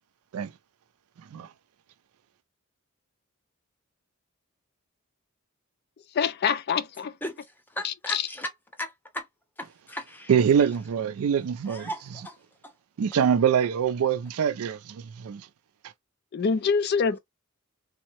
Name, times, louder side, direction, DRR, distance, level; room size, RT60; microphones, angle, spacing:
voice 1, 6.2-7.1 7.8-8.2 16.3-17.2, left 6 dB, 45° left, 0.3 m, -25 dB
voice 2, 7.2-9.3 9.6-10.3 11.7-12.4 12.6-12.7, equal, 10° left, 0.6 m, -37 dB
voice 3, 10.3-11.9 13.0-15.5, right 7 dB, 80° right, 0.4 m, -24 dB
3.5 x 2.0 x 2.9 m
head